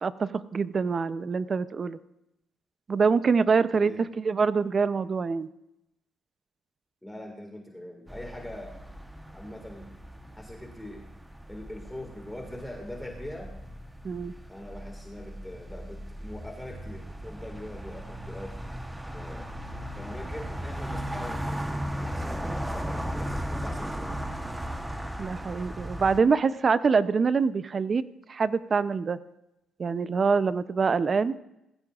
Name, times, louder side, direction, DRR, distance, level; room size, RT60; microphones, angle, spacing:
voice 1, 0.0-2.0 2.9-3.9 4.2-5.5 14.0-14.3 25.2-28.0 28.3-29.2 29.8-31.4, right 5 dB, 40° right, 14 dB, 0.6 m, -25 dB
voice 2, 3.5-4.1 7.0-8.8 9.3-9.9 10.4-11.0 11.5-13.5 14.5-18.6 19.1-19.5 19.9-24.3, left 1 dB, 5° left, 1 dB, 2.0 m, -42 dB
sound 1, 8.1-26.2, equal, 10° right, 1.0 m, -37 dB
19.5 x 15.5 x 2.5 m, 0.87 s
cardioid pair, 90°, 0 cm